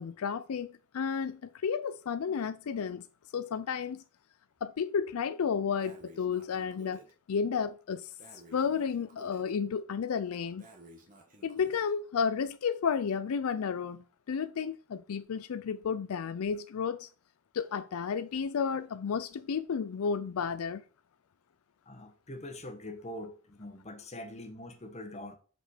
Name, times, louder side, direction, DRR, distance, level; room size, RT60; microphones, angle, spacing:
voice 1, 0.0-3.1 3.3-4.0 4.6-7.0 7.3-8.1 8.5-10.7 11.4-17.1 17.5-20.8, left 6 dB, 80° left, 0.4 m, -32 dB
Breathing, 5.8-7.1 8.2-9.5 10.6-11.9, right 2 dB, 35° right, 1.4 m, -54 dB
voice 2, 21.8-25.4, left 1 dB, 30° left, 1.3 m, -43 dB
6.1 x 5.1 x 4.9 m
head